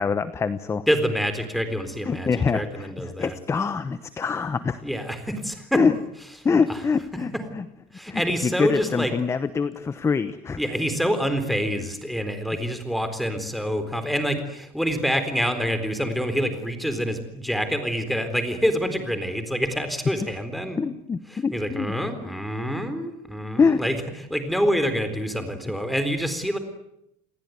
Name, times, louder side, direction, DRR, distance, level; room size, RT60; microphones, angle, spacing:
voice 1, 0.0-0.8 2.1-4.8 5.7-5.9 6.4-7.6 8.1-10.6 20.8-21.9 23.6-23.8, left 5 dB, 20° left, 13 dB, 1.0 m, -24 dB
voice 2, 0.9-3.4 4.8-5.8 6.7-6.8 7.9-9.1 10.6-20.8 21.3-26.6, equal, ahead, 9 dB, 4.0 m, -26 dB
29.5 x 19.5 x 9.5 m, 0.82 s
cardioid pair, 155°, 15 cm